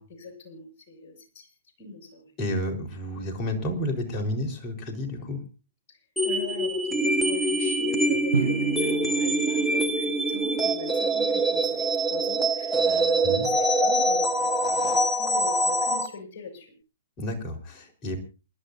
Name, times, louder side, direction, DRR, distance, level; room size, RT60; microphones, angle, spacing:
voice 1, 0.0-1.5 1.8-2.3 5.9-6.0 6.2-16.7, left 3 dB, 45° left, 4 dB, 6.7 m, -40 dB
voice 2, 2.4-5.4 13.2-13.5 17.2-18.2, left 1 dB, 30° left, 2 dB, 4.3 m, -31 dB
sound 1, 6.2-16.1, right 1 dB, 5° left, 1.6 m, -24 dB
Drum, 8.3-11.0, right 4 dB, 90° right, 0.7 m, -32 dB
28.0 x 12.0 x 2.7 m, 0.33 s
hypercardioid pair, 120°, 0 cm